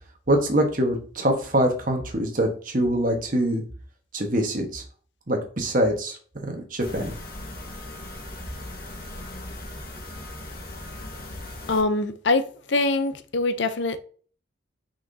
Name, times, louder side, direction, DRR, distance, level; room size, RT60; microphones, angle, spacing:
voice 1, 0.3-3.6 4.1-4.8 5.3-7.1, right 1 dB, 45° right, 1.3 m, -24 dB
sound 1, 6.8-11.8, left 1 dB, 50° left, 1.5 m, -38 dB
voice 2, 11.7-14.0, left 3 dB, 75° left, 0.6 m, -24 dB
5.9 x 5.8 x 2.8 m
head